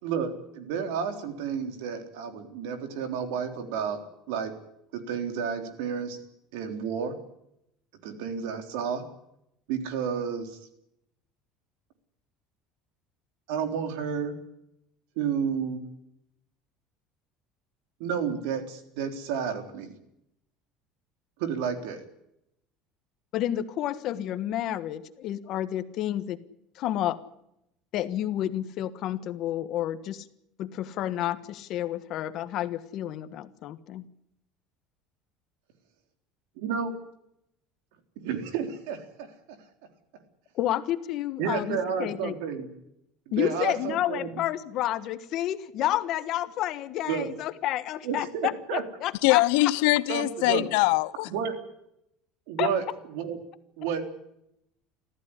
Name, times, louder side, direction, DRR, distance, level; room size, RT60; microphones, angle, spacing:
voice 1, 0.0-4.0 4.3-4.5 4.9-6.2 6.5-7.1 8.0-9.0 9.7-10.6 13.5-14.3 15.2-15.8 18.0-19.9 21.4-22.0 36.6-36.9 38.2-39.3 41.4-42.7 43.4-44.3 47.1-47.3 48.0-48.8 50.1-50.7 51.3-51.5 52.5-52.8 53.1-53.4 53.8-54.0, right 7 dB, 80° right, 7 dB, 3.6 m, -31 dB
voice 2, 23.3-26.4 26.7-27.2 27.9-30.3 30.6-34.0 40.5-42.3 43.3-49.4 52.6-52.7, left 12 dB, 45° left, 12 dB, 1.4 m, -30 dB
voice 3, 49.2-51.3, left 20 dB, 80° left, 17 dB, 0.9 m, -22 dB
24.5 x 15.0 x 9.9 m, 0.81 s
cardioid pair, 160°, 0 cm